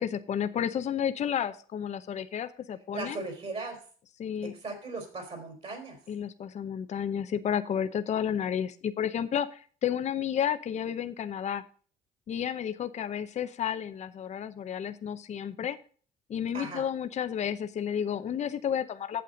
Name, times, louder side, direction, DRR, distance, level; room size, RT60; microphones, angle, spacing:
voice 1, 0.0-3.2 4.2-4.5 6.1-11.6 12.3-15.8 16.3-19.2, left 9 dB, 40° left, 11 dB, 0.7 m, -31 dB
voice 2, 2.9-3.8 4.4-6.0 16.5-16.8, right 3 dB, 40° right, 4 dB, 3.6 m, -38 dB
8.6 x 7.2 x 5.1 m, 0.42 s
cardioid pair, 110°, 17 cm